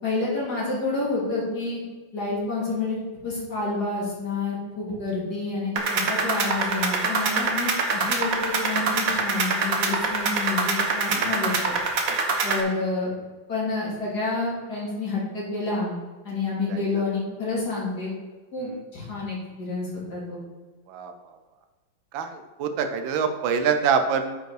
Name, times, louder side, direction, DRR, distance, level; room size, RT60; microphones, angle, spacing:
voice 1, 0.0-1.8 2.1-3.0 3.2-11.8 12.4-13.1 13.5-15.9 16.2-18.1 18.5-20.4, left 3 dB, 55° left, -5 dB, 3.1 m, -29 dB
sound 1, 5.8-12.6, right 4 dB, 50° right, 1.4 m, -25 dB
voice 2, 22.1-24.4, right 6 dB, 85° right, 7 dB, 1.5 m, -26 dB
9.3 x 5.4 x 4.7 m, 1.3 s
omnidirectional pair, 2.1 m